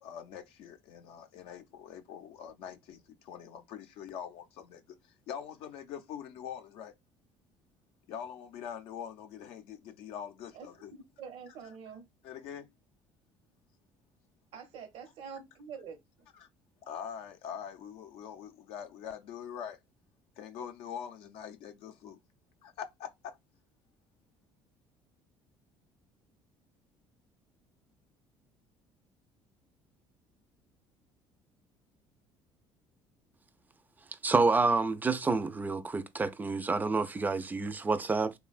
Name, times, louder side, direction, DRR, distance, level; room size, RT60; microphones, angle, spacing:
voice 1, 0.0-6.9 8.1-10.9 12.2-12.7 16.3-16.5 16.8-19.8 20.4-22.2 22.6-23.4, left 8 dB, 75° left, 0.5 m, -44 dB
voice 2, 10.5-12.0 14.5-16.0, right 6 dB, 70° right, 0.7 m, -46 dB
voice 3, 34.2-38.3, right 3 dB, 15° right, 0.4 m, -28 dB
3.1 x 2.2 x 2.4 m
supercardioid pair, 90°, 10 cm